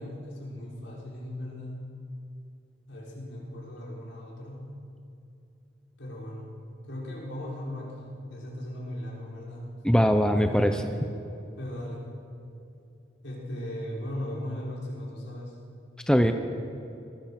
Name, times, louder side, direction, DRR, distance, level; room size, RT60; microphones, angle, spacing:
voice 1, 0.0-1.9 2.9-4.7 6.0-6.5 6.9-9.7 10.3-11.0 11.6-12.1 13.2-15.5, left 1 dB, 70° left, -4 dB, 6.0 m, -38 dB
voice 2, 9.8-10.8 16.1-16.3, equal, 5° left, 6 dB, 0.9 m, -21 dB
26.0 x 21.0 x 6.1 m, 2.8 s
head